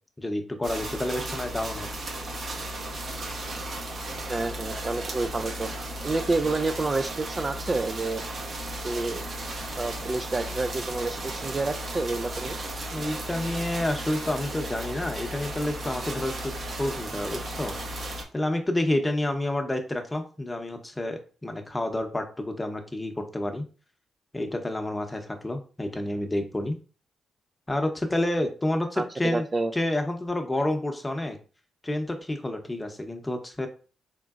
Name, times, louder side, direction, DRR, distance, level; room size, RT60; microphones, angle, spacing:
voice 1, 0.2-1.9 12.9-16.5 16.8-17.8 18.3-23.7 24.3-26.8 27.7-29.4 29.7-31.4 31.8-33.7, left 1 dB, 20° left, 5 dB, 0.8 m, -29 dB
sound 1, 0.6-18.2, right 1 dB, 55° right, 0.8 m, -35 dB
voice 2, 4.3-5.7 6.0-8.2 8.8-9.2 9.7-12.6 29.0-29.7, right 3 dB, 35° right, 8 dB, 0.3 m, -29 dB
3.7 x 3.6 x 2.4 m, 0.38 s
supercardioid pair, 50°, 0 cm